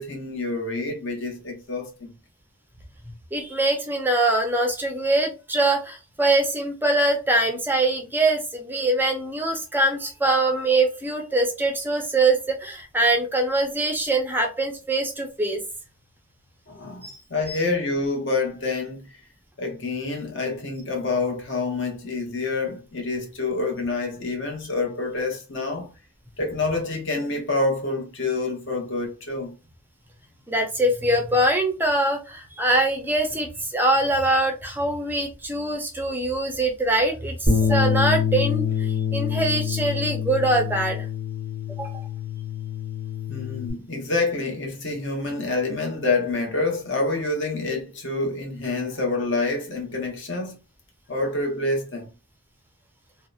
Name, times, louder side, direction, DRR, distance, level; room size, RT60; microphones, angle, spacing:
voice 1, 0.0-2.1 16.7-19.1 19.6-25.9 26.4-29.5 43.3-50.6 51.1-52.1, left 3 dB, 55° left, 0.8 m, -27 dB
voice 2, 3.3-15.6 17.0-17.2 17.5-17.6 30.5-41.0 41.8-42.0, right 2 dB, 10° right, 0.4 m, -23 dB
Bass guitar, 37.5-43.7, left 7 dB, 35° left, 1.3 m, -26 dB
2.7 x 2.0 x 2.3 m
head